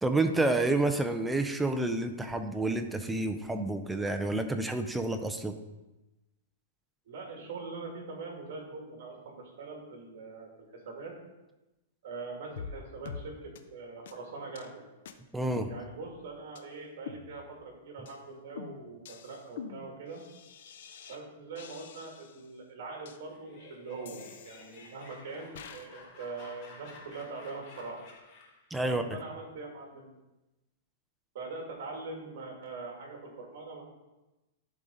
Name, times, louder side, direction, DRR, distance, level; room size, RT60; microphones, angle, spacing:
voice 1, 0.0-5.6 15.3-15.7 28.7-29.0, right 2 dB, 5° right, 6 dB, 0.4 m, -29 dB
voice 2, 7.1-11.1 12.0-14.8 15.7-20.2 21.1-28.0 28.8-30.1 31.3-33.8, right 3 dB, 55° right, 0 dB, 2.1 m, -42 dB
sound 1, 12.6-12.8 13.1-13.3 13.6-13.7 14.1-14.2 14.6-14.7 15.1-15.2 15.6-16.2 16.6-16.7 17.1-17.7 18.1-18.2 18.6-21.2 21.6-22.5 23.1-23.2 24.1-25.0 25.6-25.9, left 6 dB, 60° left, 0.5 m, -46 dB
Laughter, 23.2-28.7, left 3 dB, 35° left, 1.2 m, -53 dB
11.0 x 3.9 x 3.7 m, 1.0 s
supercardioid pair, 170°, 0 cm